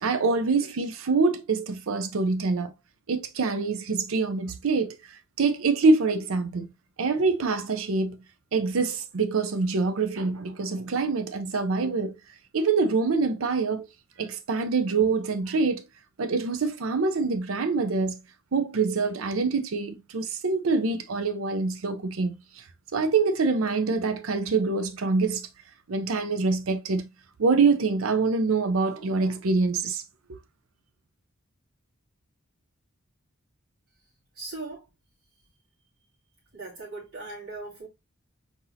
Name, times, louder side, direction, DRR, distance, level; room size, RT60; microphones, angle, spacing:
voice 1, 0.0-2.7 3.1-6.7 7.0-8.2 8.5-12.1 12.5-13.9 14.2-15.8 16.2-18.2 18.5-22.6 22.9-25.5 25.9-27.1 27.4-30.0, right 4 dB, 75° right, 0.6 m, -25 dB
voice 2, 34.4-34.8 36.5-37.9, right 3 dB, 90° right, 2.9 m, -38 dB
4.4 x 3.9 x 2.7 m
head